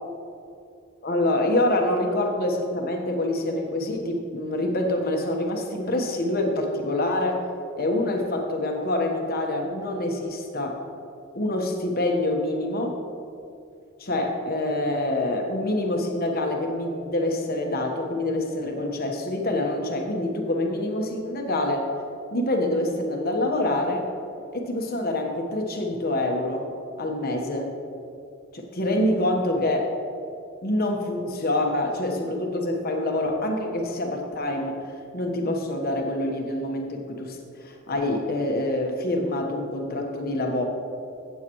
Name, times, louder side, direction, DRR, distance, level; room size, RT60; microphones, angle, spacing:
voice 1, 1.0-7.4 7.8-10.8 11.3-12.9 14.0-21.9 22.3-24.1 24.5-26.7 27.0-27.7 28.5-29.9 30.6-34.8 35.1-40.6, left 1 dB, 45° left, 2 dB, 1.3 m, -26 dB
14.5 x 8.3 x 3.1 m, 2.6 s
head